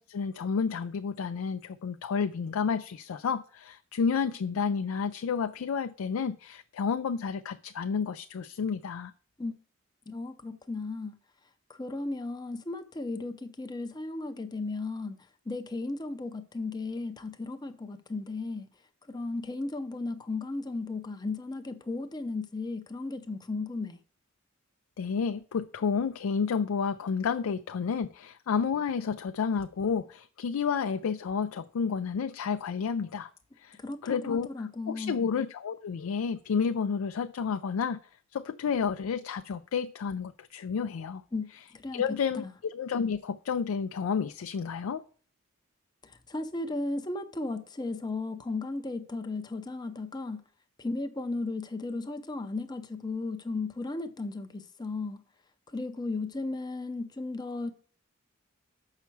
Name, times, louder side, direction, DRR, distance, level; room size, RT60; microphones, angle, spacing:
voice 1, 0.0-9.1 25.0-33.3 33.6-34.5 34.9-38.0 38.3-41.2 41.9-42.4 42.7-45.0, left 6 dB, 85° left, 0.4 m, -30 dB
voice 2, 10.1-11.2 11.7-15.2 15.5-18.7 19.1-24.0 33.8-35.2 41.3-41.5 41.7-42.5 46.0-50.4 50.8-55.2 55.7-57.7, left 3 dB, 20° left, 0.5 m, -35 dB
7.1 x 5.7 x 4.5 m
head